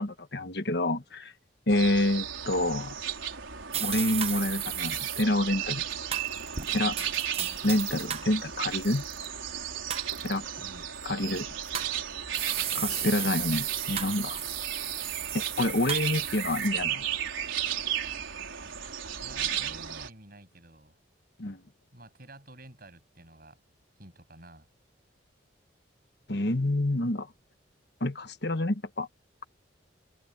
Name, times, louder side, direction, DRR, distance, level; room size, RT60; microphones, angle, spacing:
voice 1, 0.0-1.3 1.7-2.9 3.8-5.8 6.7-7.1 7.6-9.0 10.2-10.4 11.0-11.5 12.7-14.4 15.6-17.0 21.4-21.6 26.3-27.3 28.0-29.1, left 1 dB, 55° left, 1.3 m, -28 dB
sound 1, 1.7-20.1, right 9 dB, 90° right, 4.9 m, -34 dB
sound 2, 3.7-5.2 6.1-8.3 8.7-9.3 9.9-10.4 11.3-11.9 12.3-16.7, right 10 dB, 30° right, 0.9 m, -35 dB
voice 2, 10.6-11.0 15.3-15.5 19.2-20.9 21.9-23.6 24.0-24.7, right 1 dB, 50° right, 7.9 m, -50 dB
head